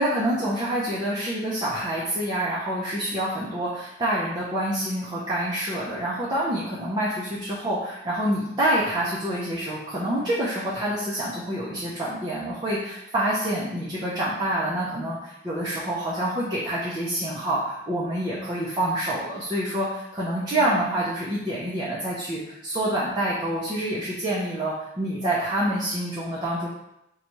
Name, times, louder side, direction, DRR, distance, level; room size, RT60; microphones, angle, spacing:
voice 1, 0.0-26.7, right 1 dB, 20° right, -8 dB, 0.5 m, -27 dB
4.0 x 2.3 x 3.0 m, 0.84 s
head